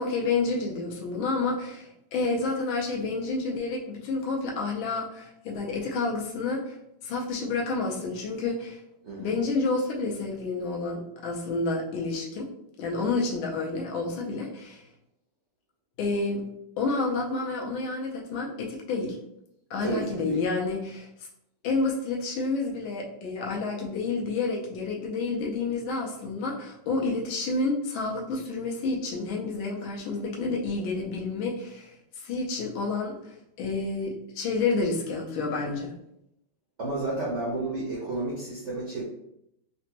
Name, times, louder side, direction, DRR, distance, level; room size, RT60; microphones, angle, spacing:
voice 1, 0.0-6.7 7.0-8.8 9.2-12.5 12.8-14.8 16.0-16.4 16.8-19.2 19.7-21.1 21.6-33.2 33.6-35.9, left 3 dB, 85° left, -1 dB, 1.4 m, -29 dB
voice 2, 9.0-9.4 19.8-20.4 36.8-39.0, right 2 dB, 75° right, -6 dB, 0.6 m, -31 dB
3.9 x 2.2 x 2.8 m, 0.80 s
omnidirectional pair, 2.2 m